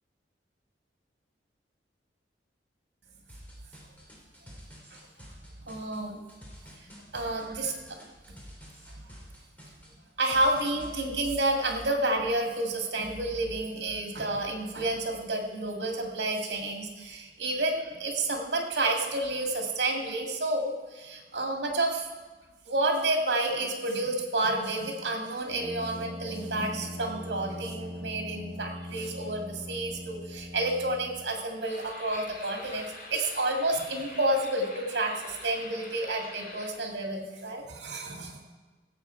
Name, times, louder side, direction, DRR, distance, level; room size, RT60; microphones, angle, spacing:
sound 1, 3.3-10.9, equal, 10° left, 3.0 m, -49 dB
voice 1, 5.7-6.2 7.1-8.0 10.2-22.1 22.7-38.4, right 2 dB, 70° right, 3 dB, 2.1 m, -30 dB
Brass instrument, 25.5-31.4, left 1 dB, 30° right, 2.4 m, -41 dB
sound 2, 31.6-36.7, left 2 dB, 55° left, 2.4 m, -45 dB
16.5 x 7.7 x 4.5 m, 1.3 s
head